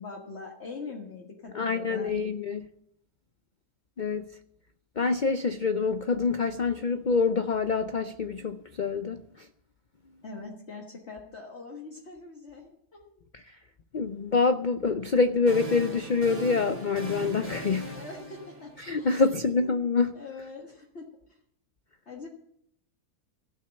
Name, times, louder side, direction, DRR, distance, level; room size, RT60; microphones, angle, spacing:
voice 1, 0.0-2.1 10.2-13.2 17.9-19.4 20.1-21.4 22.1-22.3, left 4 dB, 45° left, 1.7 m, -43 dB
voice 2, 1.5-2.7 4.0-4.3 5.0-9.5 13.3-13.6 13.9-18.0 18.8-20.2, left 4 dB, 85° left, 0.4 m, -26 dB
sound 1, 15.0-19.3, right 2 dB, 25° right, 3.0 m, -39 dB
16.0 x 6.4 x 7.9 m
omnidirectional pair, 1.7 m